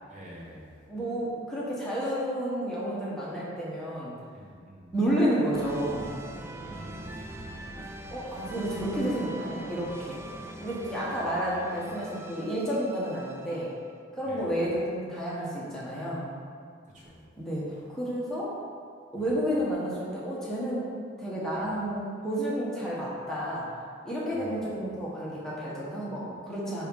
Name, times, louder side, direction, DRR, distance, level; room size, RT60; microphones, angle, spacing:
voice 1, 0.1-0.8 4.3-5.0 6.6-8.0 8.3-8.8 10.4-10.7 11.0-11.5 14.2-14.6 16.8-17.3 17.7-17.9 19.1-19.3 21.5-21.8 24.3-24.7, equal, 40° right, -5 dB, 1.4 m, -49 dB
voice 2, 0.9-4.1 4.9-6.1 8.1-10.2 10.6-13.7 14.1-16.3 17.4-18.5 19.1-20.9 21.2-23.7 24.0-26.9, equal, 5° left, -8 dB, 1.2 m, -31 dB
sound 1, 5.5-13.9, right 1 dB, 15° right, 0.3 m, -42 dB
5.6 x 5.1 x 5.4 m, 2.1 s
head